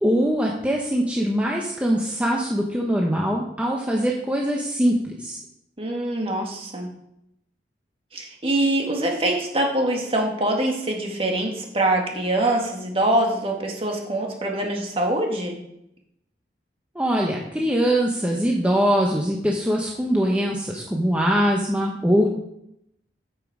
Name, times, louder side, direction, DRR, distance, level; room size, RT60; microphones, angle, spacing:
voice 1, 0.0-5.4 16.9-22.3, equal, 10° right, -1 dB, 0.9 m, -22 dB
voice 2, 5.8-6.9 8.1-15.6, right 1 dB, 35° right, 1 dB, 1.9 m, -24 dB
8.6 x 7.2 x 4.9 m, 0.79 s
head